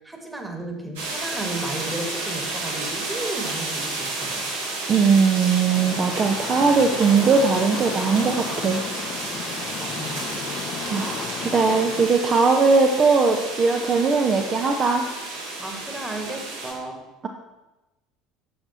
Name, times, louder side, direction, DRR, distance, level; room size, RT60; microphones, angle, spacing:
voice 1, 0.0-4.8 9.8-10.4 15.6-17.0, right 2 dB, 10° right, 3 dB, 1.8 m, -34 dB
sound 1, 1.0-16.7, right 2 dB, 70° right, 2.4 m, -31 dB
voice 2, 4.9-8.8 10.8-15.1, right 4 dB, 35° right, 3 dB, 0.8 m, -20 dB
sound 2, 5.7-12.1, left 8 dB, 45° left, 0.6 m, -35 dB
10.5 x 6.8 x 4.2 m, 1.0 s
figure-of-eight pair, 65°, 0 cm